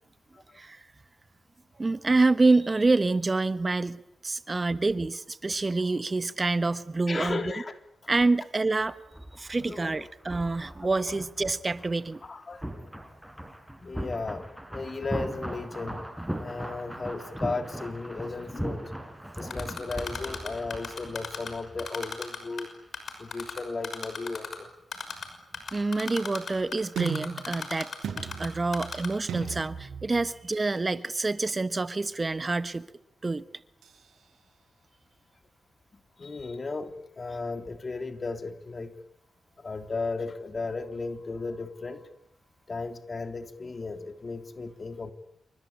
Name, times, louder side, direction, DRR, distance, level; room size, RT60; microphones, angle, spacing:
voice 1, 1.8-7.5 8.1-9.0 9.3-12.2 25.7-27.9 28.4-32.9 33.2-33.4, right 3 dB, 35° right, 1.2 m, -27 dB
voice 2, 7.1-7.8 9.6-10.0 12.2-13.1 13.8-16.0 16.4-18.8 19.4-22.7 23.2-24.7 36.2-38.9 39.6-42.1 42.7-45.1, left 3 dB, 45° left, 3.2 m, -35 dB
sound 1, 8.8-22.6 22.8-23.0, right 1 dB, 5° right, 4.6 m, -39 dB
Typing, 19.5-21.5 21.8-22.6 22.9-24.5 24.9-25.3 25.5-28.5 28.7-29.1, left 6 dB, 65° left, 6.0 m, -35 dB
sound 2, 27.0-30.9 33.8-34.0, right 7 dB, 85° right, 7.5 m, -37 dB
28.0 x 24.5 x 8.7 m
supercardioid pair, 45°, 0 cm